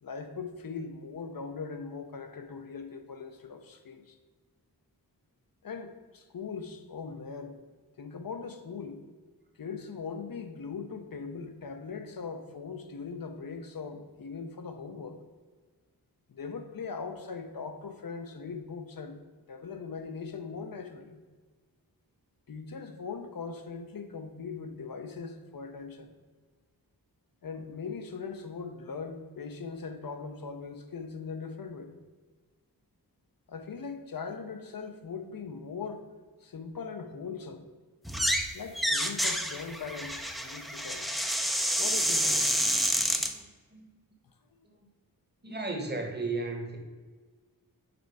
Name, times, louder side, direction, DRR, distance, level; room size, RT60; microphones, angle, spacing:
voice 1, 0.0-4.2 5.6-7.6 8.0-9.0 9.6-15.2 16.3-19.2 19.5-21.2 22.5-26.1 27.4-32.0 33.5-36.1 36.4-37.7 38.5-41.1 41.8-42.6, left 5 dB, 65° left, 6 dB, 0.7 m, -40 dB
sound 1, 38.0-38.5 38.7-43.3, equal, ahead, 0.5 m, -28 dB
voice 2, 43.1-43.9 44.6-44.7 45.4-46.8, right 3 dB, 25° right, 2 dB, 1.0 m, -35 dB
5.1 x 4.5 x 4.6 m, 1.4 s
wide cardioid pair, 70°, 37 cm